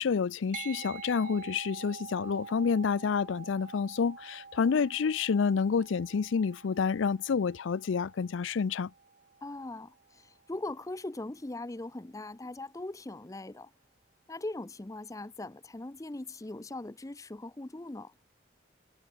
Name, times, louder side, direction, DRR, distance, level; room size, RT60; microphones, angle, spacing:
voice 1, 0.0-8.9, left 5 dB, 80° left, 0.4 m, -29 dB
sound 1, 0.5-10.2, right 5 dB, 45° right, 1.1 m, -47 dB
voice 2, 9.4-13.7 14.3-18.1, left 2 dB, 15° left, 0.6 m, -40 dB
head